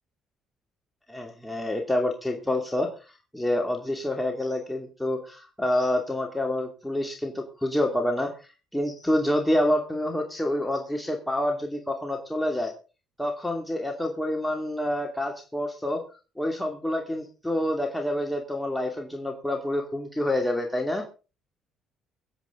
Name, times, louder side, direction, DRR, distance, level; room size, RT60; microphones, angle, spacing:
voice 1, 1.1-2.9 3.3-8.3 8.7-12.7 13.2-16.0 16.4-21.0, left 1 dB, 5° left, 2 dB, 2.6 m, -27 dB
24.0 x 8.1 x 3.9 m, 0.34 s
supercardioid pair, 85°, 0 cm